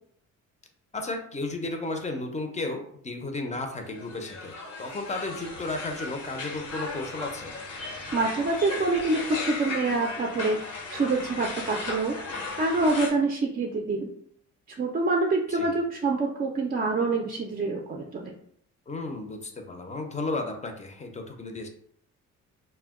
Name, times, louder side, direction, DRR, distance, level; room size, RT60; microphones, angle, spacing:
voice 1, 0.9-7.6 15.5-15.7 18.9-21.7, left 2 dB, 25° left, 4 dB, 0.5 m, -34 dB
sound 1, 3.9-13.1, left 3 dB, 85° left, 0.9 m, -36 dB
voice 2, 8.1-12.2 12.5-14.1 14.8-18.3, right 3 dB, 30° right, 1 dB, 0.4 m, -26 dB
2.2 x 2.1 x 3.5 m, 0.65 s
cardioid pair, 90°, 30 cm